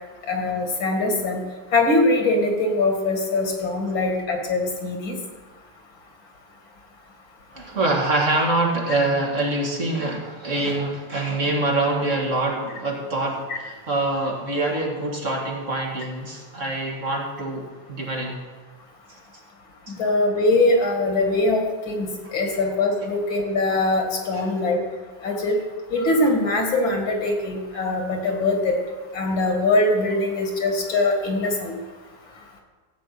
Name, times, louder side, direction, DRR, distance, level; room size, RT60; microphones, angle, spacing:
voice 1, 0.3-1.4 1.7-5.2 13.5-13.6 20.0-24.8 25.2-25.6 25.9-28.8 29.1-31.7, left 2 dB, 85° left, 2 dB, 2.8 m, -22 dB
voice 2, 7.5-18.4 19.9-20.0 24.3-24.5, right 2 dB, 40° right, -2 dB, 2.2 m, -25 dB
14.5 x 5.0 x 8.7 m, 1.4 s
omnidirectional pair, 2.1 m